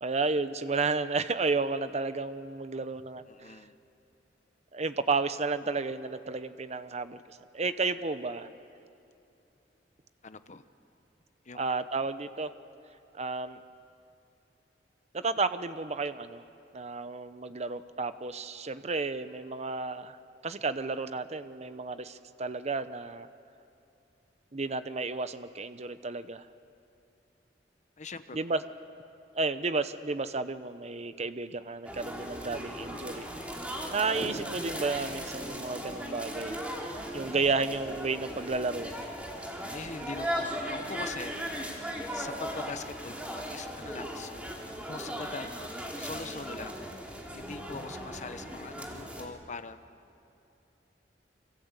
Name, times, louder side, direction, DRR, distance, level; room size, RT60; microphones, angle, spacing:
voice 1, 0.0-3.6 4.7-8.5 11.5-12.5 13.1-13.6 15.1-16.4 16.7-20.2 20.4-23.3 24.5-26.5 28.3-28.6 29.3-33.3 33.9-36.6 37.1-39.1, right 3 dB, 40° right, 12 dB, 0.9 m, -32 dB
voice 2, 3.3-3.7 10.2-10.6 11.4-11.7 28.0-28.4 39.7-41.3 42.1-44.3 44.9-46.8 47.3-49.8, left 4 dB, 45° left, 10 dB, 1.0 m, -42 dB
sound 1, 31.8-49.3, equal, 10° right, 3.1 m, -38 dB
28.0 x 25.0 x 8.2 m, 2.7 s
head